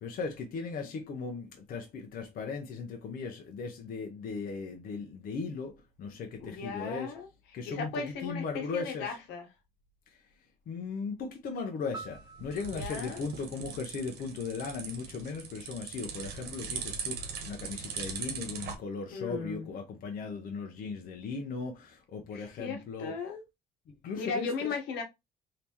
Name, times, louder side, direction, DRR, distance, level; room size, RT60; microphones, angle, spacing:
voice 1, 0.0-7.1 7.5-9.1 10.7-23.2 24.0-24.5, left 4 dB, 55° left, 0.8 m, -37 dB
voice 2, 6.4-9.5 12.7-13.2 19.1-19.7 22.3-23.4 24.2-25.0, left 5 dB, 90° left, 1.2 m, -37 dB
sound 1, 11.9-14.4, right 4 dB, 25° right, 0.8 m, -49 dB
sound 2, 12.0-18.8, right 6 dB, 70° right, 1.1 m, -40 dB
3.4 x 2.9 x 2.9 m
cardioid pair, 110°, 17 cm